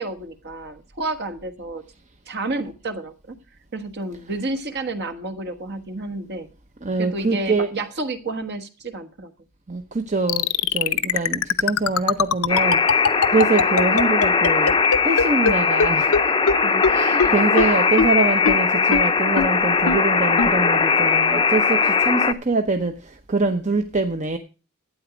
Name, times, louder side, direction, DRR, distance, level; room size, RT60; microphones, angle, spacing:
voice 1, 0.0-1.8 2.3-3.3 3.7-6.5 7.0-9.3 16.6-17.3, right 2 dB, 50° right, 9 dB, 1.4 m, -30 dB
voice 2, 6.8-7.7 9.7-12.8 13.3-14.7 15.0-16.1 16.9-23.0 23.3-24.4, right 3 dB, 35° right, 7 dB, 0.8 m, -24 dB
sound 1, 10.3-15.5 15.8-15.9 16.1-16.2 16.5-16.6 16.8-16.9 17.2-17.3 17.6-17.7 18.0-18.1 18.5-18.6 18.9-19.0 19.4-19.5 19.9-20.0 20.4-20.5, left 6 dB, 70° left, 0.7 m, -19 dB
Alarm, 12.5-22.3, left 5 dB, 20° left, 0.7 m, -19 dB
12.0 x 9.3 x 5.0 m, 0.33 s
head